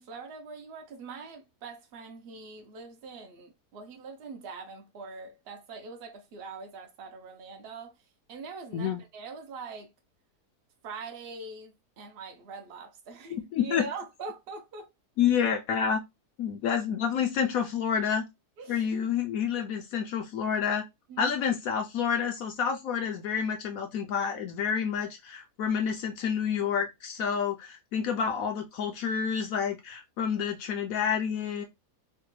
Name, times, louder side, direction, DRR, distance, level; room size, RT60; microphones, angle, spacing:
voice 1, 0.0-7.9 8.3-9.9 10.8-14.9 18.6-19.1 21.1-21.4, right 4 dB, 65° right, 0.6 m, -43 dB
voice 2, 13.3-13.8 15.2-16.0 16.4-18.2 18.7-20.8 21.2-31.6, left 7 dB, 70° left, 0.9 m, -29 dB
3.2 x 2.2 x 3.1 m
omnidirectional pair, 1.7 m